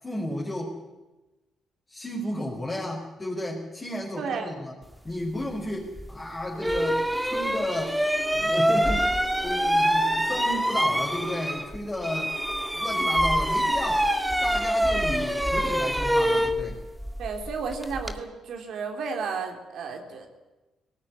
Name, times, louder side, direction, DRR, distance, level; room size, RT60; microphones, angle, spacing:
voice 1, 0.0-0.8 1.9-4.7 5.0-8.0 8.3-12.3 12.7-14.1 14.4-16.8, left 1 dB, 20° left, -3 dB, 5.0 m, -33 dB
voice 2, 4.2-4.5 17.2-20.4, right 5 dB, 70° right, 3 dB, 3.8 m, -33 dB
sound 1, 6.0-6.1 6.6-11.8 12.0-18.2, equal, 5° right, 2.0 m, -25 dB
19.0 x 18.5 x 10.0 m, 1.1 s
cardioid pair, 90°, 0 cm